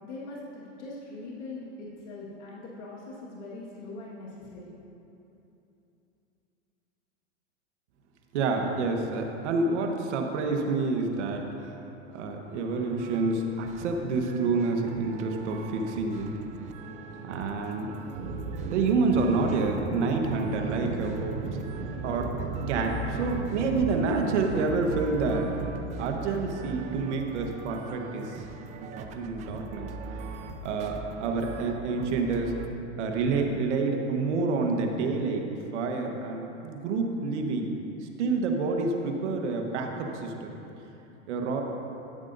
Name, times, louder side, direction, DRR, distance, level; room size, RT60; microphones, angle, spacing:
voice 1, 0.0-4.7, left 2 dB, 75° left, -5 dB, 1.8 m, -41 dB
voice 2, 8.3-11.7 12.1-16.3 17.2-17.9 18.7-21.5 22.0-22.3 22.7-25.4 26.0-28.3 28.8-29.9 30.6-32.5 33.0-35.4 35.7-37.7 38.2-40.6 41.3-41.6, right 3 dB, 70° right, 3 dB, 1.3 m, -28 dB
sound 1, 12.8-32.7, right 5 dB, 20° right, 0.4 m, -43 dB
sound 2, 18.2-27.4, right 4 dB, 50° right, 0.9 m, -35 dB
13.0 x 9.0 x 2.7 m, 2.9 s
hypercardioid pair, 125°, 36 cm